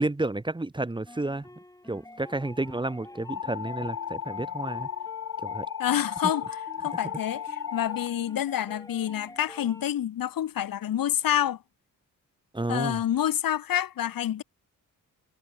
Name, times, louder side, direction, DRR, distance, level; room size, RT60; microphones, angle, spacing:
voice 1, 0.0-1.5 1.9-4.9 5.4-5.7 12.5-13.0, right 2 dB, 15° right, 1.4 m, -31 dB
sound 1, 1.1-9.9, left 1 dB, 10° left, 3.7 m, -48 dB
sound 2, 3.3-8.1, left 8 dB, 55° left, 1.3 m, -35 dB
voice 2, 5.8-6.4 6.8-11.6 12.7-14.4, left 11 dB, 85° left, 1.3 m, -28 dB
wide cardioid pair, 115°, 33 cm